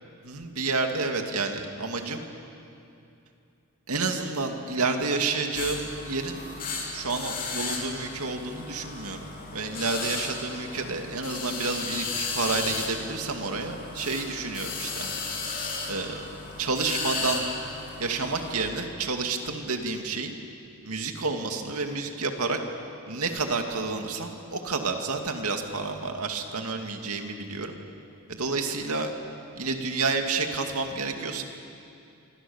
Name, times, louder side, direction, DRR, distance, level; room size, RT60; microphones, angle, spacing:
voice 1, 0.2-2.2 3.9-6.4 6.9-9.2 9.5-15.1 15.9-16.2 16.6-17.4 18.0-20.3 20.8-22.6 23.1-27.7 28.3-29.1 29.6-31.4, right 3 dB, 90° right, 4 dB, 2.5 m, -30 dB
sound 1, 5.5-18.5, left 4 dB, 40° left, 3.8 m, -35 dB
26.5 x 25.5 x 7.2 m, 2.7 s
head